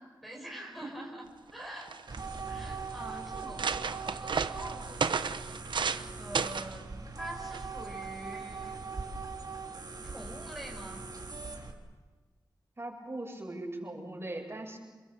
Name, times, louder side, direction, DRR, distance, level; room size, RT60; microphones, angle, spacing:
voice 1, 0.2-1.2 1.5-1.9 2.4-5.2 6.2-6.9 7.2-8.8 10.0-11.0, right 1 dB, ahead, -2 dB, 5.0 m, -45 dB
sound 1, 1.5-1.6 1.8-2.4 3.0-3.1 3.4-6.1 6.3-6.8 7.5-7.8, right 5 dB, 90° right, 0.9 m, -32 dB
sound 2, 2.1-11.7, right 4 dB, 60° right, 3.8 m, -41 dB
voice 2, 12.8-14.8, right 1 dB, 30° right, 0 dB, 7.7 m, -40 dB
29.0 x 22.5 x 7.8 m, 1.3 s
wide cardioid pair, 90°, 8 cm